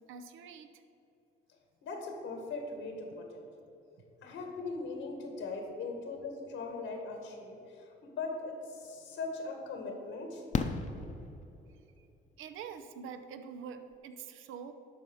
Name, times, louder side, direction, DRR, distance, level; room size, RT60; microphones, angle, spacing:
voice 1, 0.1-0.7 12.4-14.7, right 6 dB, 85° right, 9 dB, 0.7 m, -45 dB
voice 2, 1.8-3.4 4.2-10.5, left 3 dB, 85° left, 2 dB, 1.8 m, -40 dB
Fireworks, 8.8-8.9 10.5-11.8 13.6-13.7 13.9-14.0, left 5 dB, 40° left, 0.7 m, -35 dB
11.5 x 4.2 x 6.4 m, 2.8 s
cardioid pair, 90°, 20 cm